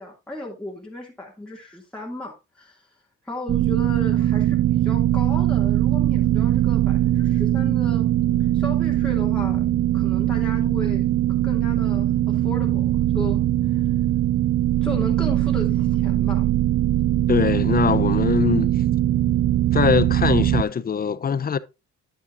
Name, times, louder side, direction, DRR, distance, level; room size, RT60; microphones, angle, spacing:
voice 1, 0.0-2.9 3.2-8.1 8.5-9.6 9.9-11.1 11.4-13.8 14.8-16.4, left 1 dB, 5° left, 2.2 m, -35 dB
sound 1, 3.5-20.6, right 13 dB, 50° right, 0.4 m, -21 dB
voice 2, 17.3-18.8 19.7-21.6, left 7 dB, 30° left, 0.5 m, -22 dB
9.2 x 8.7 x 2.5 m
cardioid pair, 90°, 30 cm